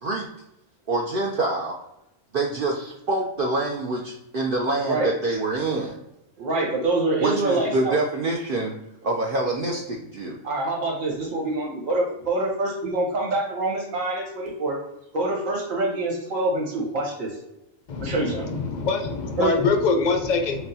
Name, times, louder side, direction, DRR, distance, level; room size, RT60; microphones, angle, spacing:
voice 1, 0.9-1.8 2.3-6.0 7.2-8.7 9.0-10.4, right 2 dB, 60° right, 0 dB, 0.5 m, -26 dB
voice 2, 6.4-8.0 10.4-14.8 15.1-17.3 18.0-18.5 19.4-19.5, right 2 dB, 80° right, -1 dB, 1.6 m, -25 dB
voice 3, 17.9-20.7, left 4 dB, 60° left, 4 dB, 0.4 m, -24 dB
5.9 x 2.1 x 2.7 m, 0.87 s
omnidirectional pair, 1.4 m